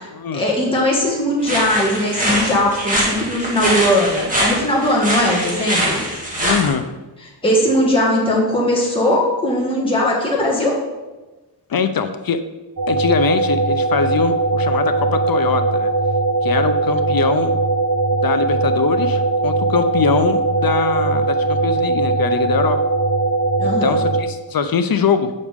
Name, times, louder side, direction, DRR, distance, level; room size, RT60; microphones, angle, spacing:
voice 1, 0.3-6.0 7.2-10.8 23.6-24.0, left 1 dB, 10° left, -4 dB, 1.7 m, -19 dB
sound 1, 1.4-6.7, right 1 dB, 20° right, 2.2 m, -22 dB
voice 2, 6.4-6.8 11.7-12.4 12.9-15.9 16.4-17.6 18.2-22.8 23.8-25.3, left 6 dB, 55° left, 9 dB, 0.6 m, -22 dB
sound 2, 12.8-24.2, right 2 dB, 45° right, 0.9 m, -19 dB
8.4 x 6.5 x 3.5 m, 1.1 s
wide cardioid pair, 85°, 44 cm